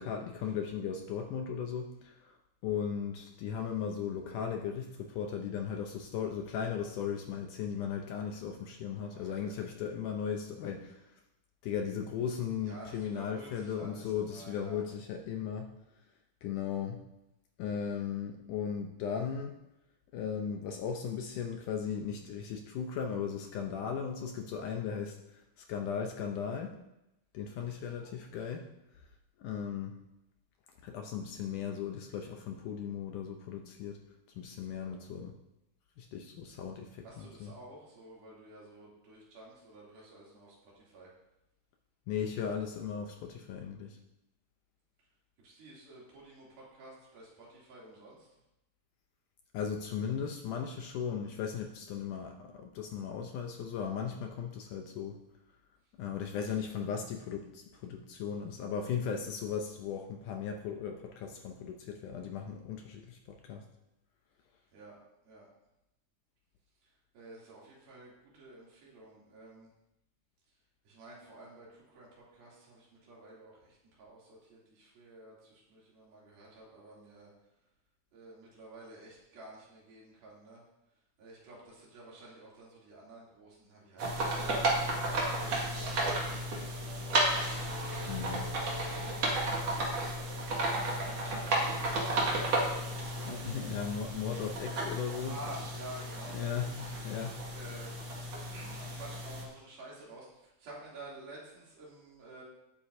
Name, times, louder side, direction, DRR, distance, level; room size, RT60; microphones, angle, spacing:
voice 1, 0.0-2.4 2.6-11.0 11.6-15.7 16.4-17.0 17.6-19.6 20.1-26.8 27.3-28.7 29.4-30.0 30.8-34.0 34.4-35.4 36.0-37.5 42.1-44.0 49.5-55.2 56.0-63.6 88.1-88.5 91.4-92.3 93.3-95.3 96.3-97.4, left 7 dB, 75° left, 3 dB, 2.0 m, -37 dB
voice 2, 9.1-9.7 12.6-14.8 27.7-28.5 34.8-35.0 37.0-41.1 45.4-48.3 56.4-56.5 64.7-65.0 65.2-65.5 67.1-69.7 70.8-77.3 78.1-80.6 81.2-85.1 85.7-87.6 88.8-91.2 91.8-93.3 95.2-96.7 97.5-97.9 98.5-100.3 100.6-102.4, right 2 dB, 80° right, -5 dB, 4.7 m, -51 dB
sound 1, 84.0-99.4, right 1 dB, 50° right, 2.5 m, -33 dB
18.0 x 8.5 x 2.7 m, 0.89 s
omnidirectional pair, 4.2 m